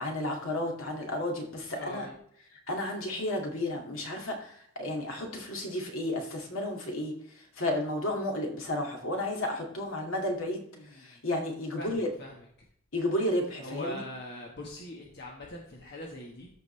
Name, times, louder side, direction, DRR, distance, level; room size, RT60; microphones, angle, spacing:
voice 1, 0.0-2.1 2.7-10.6 11.0-12.1 12.9-14.0, left 1 dB, 70° left, 1 dB, 2.2 m, -32 dB
voice 2, 1.7-2.2 10.7-11.2 11.8-12.4 13.6-16.5, left 1 dB, 50° left, -2 dB, 1.4 m, -42 dB
13.5 x 5.2 x 3.3 m, 0.65 s
head